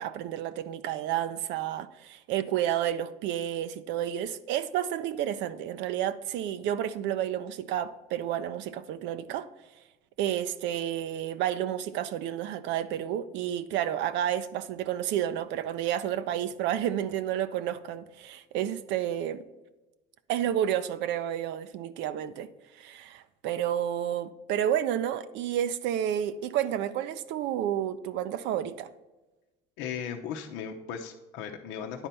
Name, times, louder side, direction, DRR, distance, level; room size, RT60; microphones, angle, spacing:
voice 1, 0.0-9.5 10.2-19.4 20.3-22.5 22.8-28.9, right 10 dB, 75° right, 0.6 m, -30 dB
voice 2, 29.8-32.1, left 8 dB, 80° left, 0.8 m, -37 dB
10.0 x 4.4 x 5.3 m
cardioid pair, 115°, 19 cm